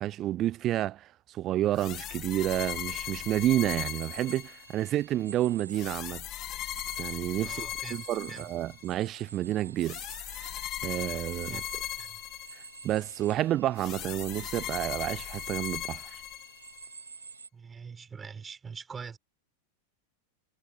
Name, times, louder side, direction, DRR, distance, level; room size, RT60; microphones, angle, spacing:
voice 1, 0.0-6.2 7.0-10.0 10.8-11.6 12.8-16.2, right 13 dB, 30° right, 0.6 m, -30 dB
sound 1, 1.8-4.9 5.7-8.8 9.8-13.0 13.8-16.9, left 14 dB, 35° left, 1.6 m, -38 dB
sound 2, 2.5-17.5, right 5 dB, 75° right, 2.3 m, -49 dB
voice 2, 7.4-8.5 11.4-11.7 12.0-12.2 17.5-19.2, right 6 dB, 15° right, 4.4 m, -44 dB
figure-of-eight pair, 90°, 0 cm